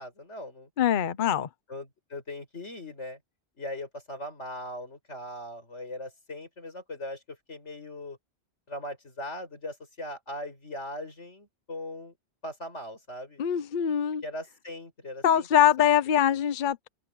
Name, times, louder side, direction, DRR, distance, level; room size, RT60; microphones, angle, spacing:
voice 1, 0.0-0.7 1.7-3.2 3.6-8.2 8.7-12.1 12.4-13.4 14.2-15.5, left 1 dB, 80° left, 5.7 m, -39 dB
voice 2, 0.8-1.5 13.4-14.2 15.2-16.9, left 10 dB, 50° left, 0.8 m, -23 dB
open air
omnidirectional pair, 1.2 m